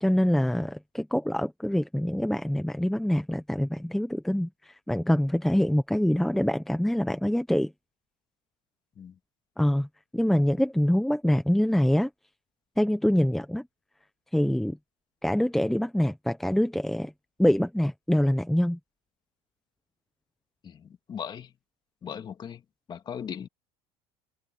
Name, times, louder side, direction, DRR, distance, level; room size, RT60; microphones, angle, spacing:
voice 1, 0.0-7.7 9.6-9.9 10.1-12.1 12.8-13.6 14.3-14.8 15.2-17.1 17.4-18.8, equal, ahead, 1.1 m, -25 dB
voice 2, 20.6-21.5 22.0-22.6 22.9-23.5, left 8 dB, 30° left, 2.3 m, -38 dB
open air
supercardioid pair, 125°, 15 cm